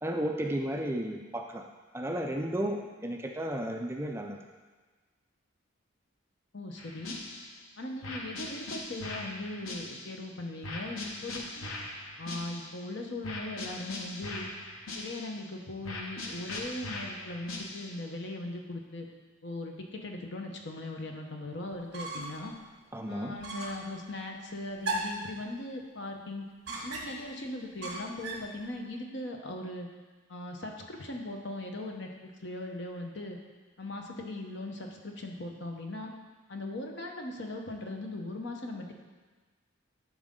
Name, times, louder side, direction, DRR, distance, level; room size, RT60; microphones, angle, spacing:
voice 1, 0.0-1.7 1.9-4.4 22.9-23.4, right 1 dB, 10° right, 2 dB, 0.4 m, -33 dB
voice 2, 6.5-7.2 7.8-11.7 12.2-14.5 15.0-19.1 19.4-22.5 23.1-26.5 26.8-29.9 30.3-33.4 33.8-36.1 36.5-38.9, left 2 dB, 60° left, 2 dB, 1.0 m, -39 dB
sound 1, 6.8-7.6 8.0-10.2 10.6-12.8 13.2-15.5 15.8-18.1, left 2 dB, 80° left, 1.0 m, -41 dB
sound 2, 21.7-22.5 22.8-22.9 23.4-23.9 24.8-25.3 26.7-27.3 27.8-28.5, right 2 dB, 55° right, 1.6 m, -36 dB
11.5 x 4.9 x 3.7 m, 1.3 s
head